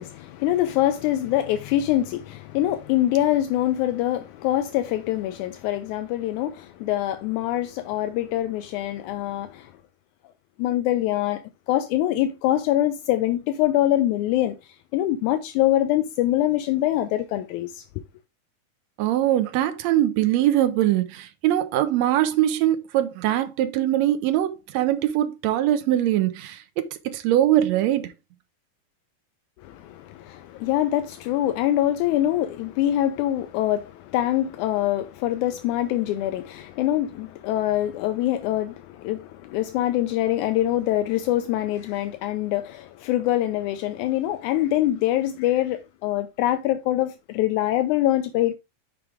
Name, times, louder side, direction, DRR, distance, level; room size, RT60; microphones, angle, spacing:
voice 1, 0.0-9.7 10.6-11.4 11.7-14.5 14.9-17.8 29.6-48.6, left 13 dB, 85° left, 1.7 m, -24 dB
voice 2, 19.0-28.1, right 13 dB, 80° right, 1.5 m, -22 dB
6.3 x 4.9 x 3.4 m
omnidirectional pair, 4.0 m